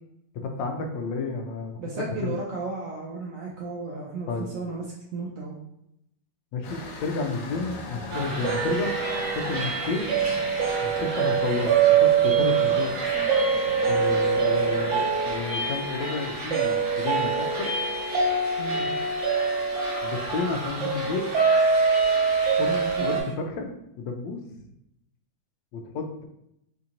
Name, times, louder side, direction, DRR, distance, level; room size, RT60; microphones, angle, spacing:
voice 1, 0.4-1.8 2.2-2.3 4.3-4.5 6.5-8.9 9.3-10.1 10.8-12.9 13.9-17.7 20.0-21.3 22.6-22.7 23.0-23.7 24.0-24.7 25.7-26.3, left 4 dB, 80° left, 4 dB, 1.2 m, -31 dB
voice 2, 1.8-4.8 5.1-5.6 18.6-18.9 22.6-23.1, right 3 dB, 80° right, -3 dB, 0.7 m, -34 dB
sound 1, 6.6-15.4, left 3 dB, 65° left, 0.9 m, -40 dB
sound 2, 8.1-23.2, right 5 dB, 50° right, 1.0 m, -24 dB
4.4 x 2.5 x 2.8 m, 0.80 s
omnidirectional pair, 2.0 m